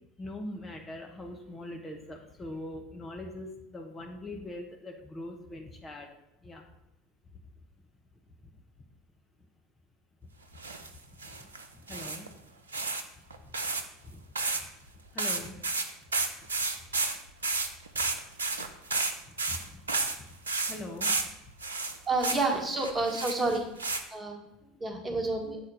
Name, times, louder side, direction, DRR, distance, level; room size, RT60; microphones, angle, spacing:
voice 1, 0.2-6.1 6.4-6.6 11.1-11.5 11.7-12.3 14.0-14.2 14.5-14.7 15.1-15.6 16.7-17.1 18.1-18.2 19.3-19.8 20.6-21.3 24.6-25.2, left 1 dB, 20° left, 1 dB, 1.4 m, -42 dB
sound 1, 10.6-10.9 11.2-12.3 12.7-13.0 13.3-13.8 14.3-14.6 14.9-15.0 15.2-20.2 20.5-21.3 21.6-22.5 22.8-24.0, right 3 dB, 85° right, 0.6 m, -31 dB
voice 2, 22.1-23.6 24.1-24.4 24.8-25.6, right 3 dB, 25° right, 2 dB, 1.6 m, -29 dB
7.4 x 4.3 x 6.3 m, 0.87 s
figure-of-eight pair, 70°, 0 cm